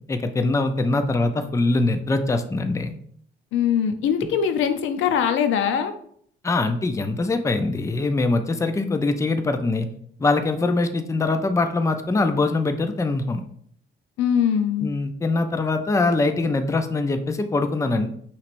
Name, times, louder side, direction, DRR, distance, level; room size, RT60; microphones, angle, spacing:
voice 1, 0.1-2.9 6.4-9.9 10.2-13.4 14.8-18.1, left 3 dB, 15° left, 7 dB, 0.4 m, -23 dB
voice 2, 3.5-5.9 14.2-14.9, left 8 dB, 80° left, 8 dB, 0.6 m, -22 dB
5.6 x 3.2 x 2.6 m, 0.63 s
cardioid pair, 90°, 20 cm